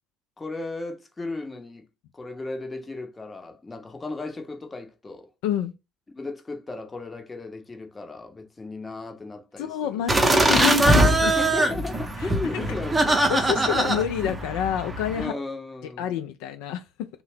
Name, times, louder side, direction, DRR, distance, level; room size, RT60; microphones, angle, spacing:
voice 1, 0.4-1.8 2.1-5.3 6.1-9.7 11.2-13.2 13.5-13.9 15.2-16.0, left 3 dB, 20° left, 0.7 m, -35 dB
voice 2, 5.4-5.7 9.6-11.3 12.2-12.7 13.3-15.3 16.0-17.1, left 10 dB, 65° left, 0.3 m, -28 dB
sound 1, 10.1-15.2, right 1 dB, 15° right, 0.7 m, -22 dB
2.6 x 2.0 x 3.2 m
figure-of-eight pair, 65°, 0 cm